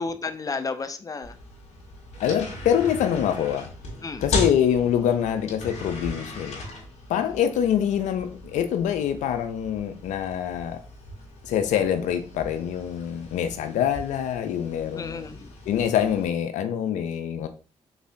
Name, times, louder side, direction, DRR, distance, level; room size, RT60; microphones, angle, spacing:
voice 1, 0.0-1.4 4.0-4.2 7.2-7.3 14.9-15.5, left 4 dB, 30° left, 9 dB, 0.5 m, -32 dB
sound 1, 1.2-16.2, left 2 dB, 65° left, 1.6 m, -37 dB
voice 2, 2.2-3.7 4.2-6.6 7.1-10.8 11.4-15.3 15.7-17.5, left 9 dB, 80° left, 9 dB, 0.4 m, -25 dB
4.0 x 3.8 x 2.6 m, 0.39 s
supercardioid pair, 50°, 12 cm